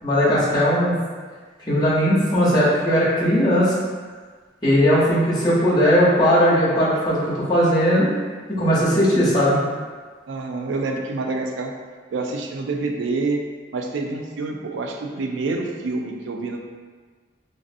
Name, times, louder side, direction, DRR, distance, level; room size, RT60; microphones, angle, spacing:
voice 1, 0.0-1.0 1.6-3.7 4.6-8.1 8.5-9.6, equal, 20° left, -8 dB, 0.7 m, -18 dB
voice 2, 10.3-11.7 12.1-13.4 13.7-16.6, right 3 dB, 80° right, 2 dB, 0.4 m, -27 dB
3.0 x 2.5 x 2.5 m, 1.5 s
head